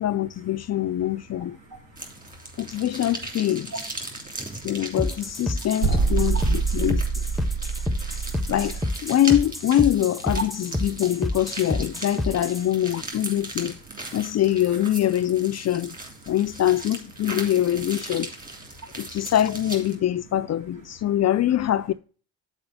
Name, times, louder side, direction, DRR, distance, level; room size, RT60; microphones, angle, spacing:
voice 1, 0.0-1.6 2.6-3.7 4.6-7.0 8.5-13.8 14.1-15.9 16.3-18.3 19.0-21.9, left 12 dB, 45° left, 0.4 m, -24 dB
voice 2, 1.7-2.1 3.7-3.8 4.1-4.6 6.3-6.5 7.7-8.1 13.9-14.1 18.8-19.1, right 2 dB, 65° right, 3.1 m, -42 dB
sound 1, 2.0-20.0, right 2 dB, 20° right, 2.9 m, -39 dB
sound 2, 5.0-12.7, left 1 dB, ahead, 0.8 m, -29 dB
sound 3, 5.8-8.9, right 5 dB, 90° right, 1.4 m, -25 dB
7.1 x 4.3 x 6.7 m
supercardioid pair, 60°, 39 cm